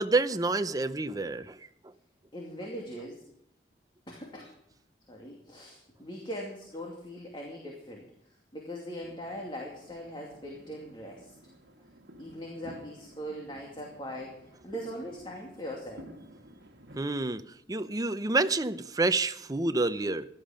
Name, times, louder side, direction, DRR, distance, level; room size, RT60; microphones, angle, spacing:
voice 1, 0.0-1.7 17.0-20.3, right 2 dB, 20° right, 11 dB, 0.6 m, -28 dB
voice 2, 2.3-3.2 4.1-4.5 5.1-8.1 8.5-11.3 12.2-16.1, equal, 30° left, -1 dB, 2.5 m, -40 dB
sound 1, 9.0-17.1, equal, 70° right, 1.6 m, -52 dB
16.0 x 11.5 x 5.1 m, 0.75 s
head